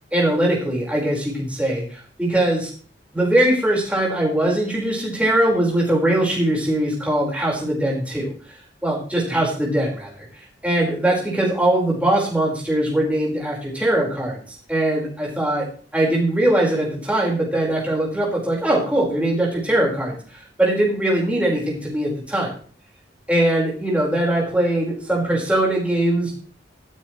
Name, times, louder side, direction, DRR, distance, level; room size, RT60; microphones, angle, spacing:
voice 1, 0.1-2.7 3.1-8.3 8.8-10.3 10.6-14.4 14.7-15.7 15.9-20.1 20.6-22.5 23.3-26.3, right 1 dB, 5° right, -3 dB, 5.0 m, -21 dB
18.5 x 9.4 x 3.3 m, 0.41 s
head